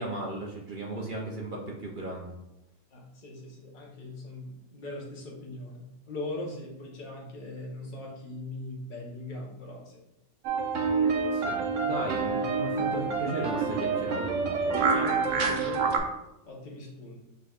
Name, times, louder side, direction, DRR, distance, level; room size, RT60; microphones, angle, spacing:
voice 1, 0.0-2.3 11.3-14.8, right 2 dB, 50° right, -2 dB, 0.7 m, -36 dB
voice 2, 2.9-10.0 14.8-16.0 16.4-17.2, left 2 dB, 40° left, -3 dB, 1.1 m, -40 dB
sound 1, 10.4-16.0, right 4 dB, 75° right, 1.0 m, -27 dB
6.7 x 3.2 x 2.4 m, 0.89 s
omnidirectional pair, 1.3 m